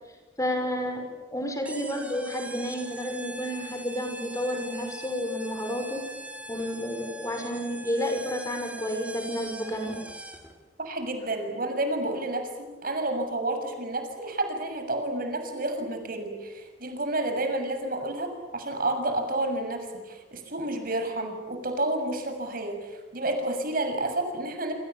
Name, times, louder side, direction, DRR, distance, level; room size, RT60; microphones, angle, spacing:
voice 1, 0.4-6.1 6.5-10.0, equal, 20° left, 4 dB, 5.9 m, -31 dB
sound 1, 1.6-10.6, right 1 dB, 5° right, 3.8 m, -42 dB
voice 2, 10.8-24.7, right 2 dB, 55° right, 6 dB, 6.8 m, -30 dB
28.5 x 27.5 x 7.3 m, 1.2 s
head